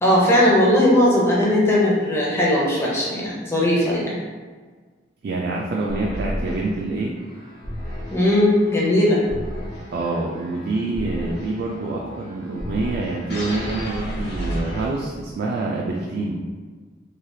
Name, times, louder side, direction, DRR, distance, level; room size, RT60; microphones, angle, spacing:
voice 1, 0.0-4.2 8.1-9.2, left 1 dB, 15° left, -5 dB, 0.6 m, -18 dB
voice 2, 5.2-7.1 9.9-16.4, right 2 dB, 55° right, -2 dB, 0.3 m, -26 dB
sound 1, 5.9-15.3, equal, 60° left, 0.8 m, -33 dB
3.2 x 2.3 x 2.6 m, 1.5 s
head